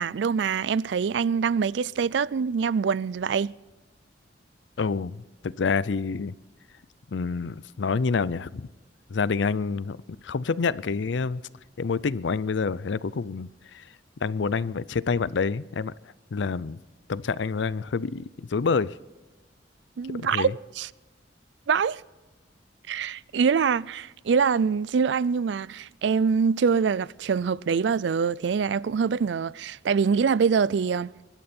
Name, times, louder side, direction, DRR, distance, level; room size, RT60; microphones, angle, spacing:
voice 1, 0.0-3.5 20.0-20.9 21.7-22.0 22.9-31.1, right 6 dB, 70° right, 0.4 m, -24 dB
voice 2, 4.8-6.3 7.1-8.7 9.1-10.0 10.2-11.4 11.8-13.8 14.2-15.9 16.3-16.8 17.1-19.0 20.1-20.5, left 5 dB, 75° left, 0.5 m, -27 dB
23.5 x 12.0 x 4.4 m
head